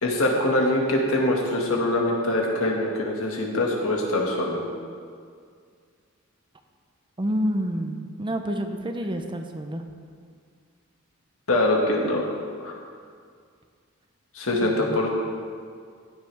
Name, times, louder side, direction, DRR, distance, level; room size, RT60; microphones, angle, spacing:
voice 1, 0.0-4.6 11.5-12.2 12.6-12.7 14.3-15.1, left 1 dB, 70° left, -1 dB, 2.0 m, -23 dB
voice 2, 7.2-9.8 14.6-15.0, equal, 25° right, 5 dB, 0.7 m, -28 dB
15.5 x 9.8 x 3.5 m, 2.1 s
head